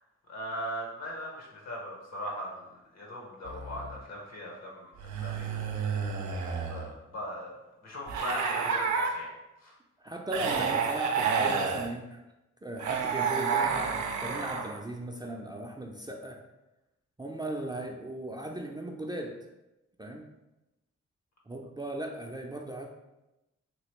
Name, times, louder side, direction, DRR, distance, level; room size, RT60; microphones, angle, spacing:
voice 1, 0.3-4.9 5.2-6.0 6.4-7.5 7.8-9.3 9.6-9.7, equal, 60° left, -1 dB, 1.1 m, -39 dB
sound 1, 3.5-4.0 5.0-6.9 8.1-9.1 10.3-11.9 12.8-14.8, right 6 dB, 75° right, 0.5 m, -30 dB
voice 2, 10.0-12.2 12.6-16.4 17.2-19.4 20.0-20.2 21.5-22.9, right 1 dB, 15° right, 1 dB, 0.4 m, -37 dB
2.9 x 2.8 x 3.1 m, 0.96 s
supercardioid pair, 45°, 30 cm